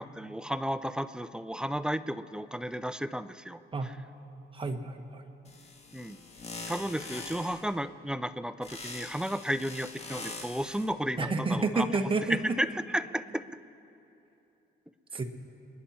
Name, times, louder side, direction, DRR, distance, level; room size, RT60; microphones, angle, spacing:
voice 1, 0.0-3.9 5.9-6.2 6.7-12.0 12.3-13.4, equal, 5° right, 12 dB, 0.5 m, -33 dB
voice 2, 4.5-5.2 11.2-12.4 15.1-15.2, right 3 dB, 25° right, 4 dB, 1.4 m, -29 dB
sound 1, 5.5-7.7 8.6-10.9, left 3 dB, 30° left, 1.7 m, -43 dB
28.0 x 10.0 x 4.4 m, 3.0 s
cardioid pair, 90°, 20 cm